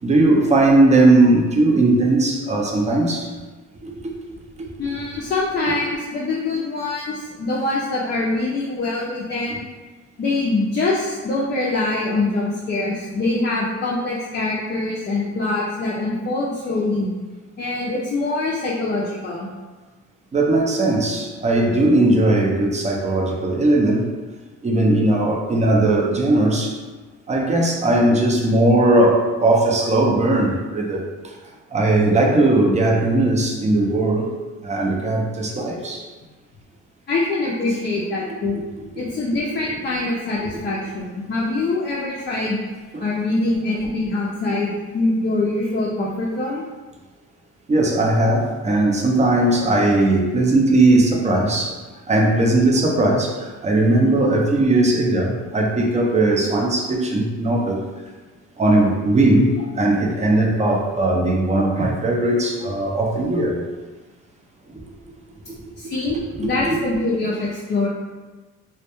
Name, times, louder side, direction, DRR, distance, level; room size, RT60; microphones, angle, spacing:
voice 1, 0.0-3.3 3.8-4.2 4.6-5.0 20.3-24.1 24.6-26.8 27.3-31.3 31.7-34.3 34.6-36.1 42.9-43.0 47.7-51.8 52.1-57.8 58.6-63.6 66.7-66.8, right 2 dB, 25° right, 0 dB, 0.4 m, -18 dB
voice 2, 4.8-9.6 10.2-17.1 17.6-19.5 37.1-38.6 39.0-42.6 43.0-46.6 65.8-67.9, left 2 dB, 35° left, -5 dB, 0.4 m, -24 dB
2.1 x 2.1 x 2.9 m, 1.3 s
cardioid pair, 90°, 30 cm